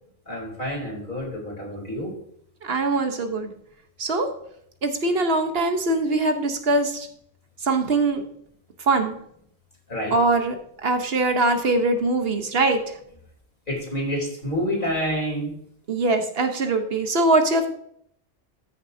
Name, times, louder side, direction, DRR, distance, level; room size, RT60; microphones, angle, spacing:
voice 1, 0.3-2.2 9.9-10.2 13.7-15.6, equal, 50° left, -2 dB, 3.8 m, -28 dB
voice 2, 2.6-3.5 4.0-4.3 4.8-7.1 7.6-8.2 8.9-9.2 10.1-10.6 10.8-12.8 15.9-17.7, right 2 dB, 65° right, 6 dB, 1.3 m, -22 dB
13.5 x 6.7 x 2.7 m, 0.68 s
omnidirectional pair, 1.1 m